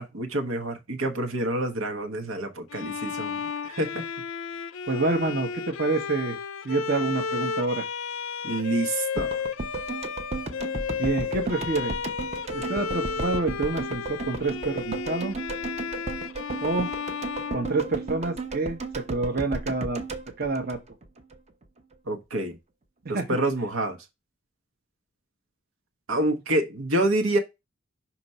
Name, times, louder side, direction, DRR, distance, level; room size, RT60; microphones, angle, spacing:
voice 1, 0.0-4.0 8.4-9.4 22.1-22.6 23.1-24.0 26.1-27.4, right 1 dB, 80° right, 1.2 m, -27 dB
Bowed string instrument, 2.7-18.4, left 5 dB, 70° left, 0.5 m, -33 dB
voice 2, 4.9-6.4 6.6-7.9 11.0-12.0 12.5-15.3 16.6-16.9 17.5-20.0 20.4-20.8 23.0-23.3, right 3 dB, 50° right, 1.0 m, -27 dB
sound 1, 9.2-21.4 21.6-21.7, right 3 dB, 30° right, 0.7 m, -34 dB
6.0 x 3.0 x 5.5 m
head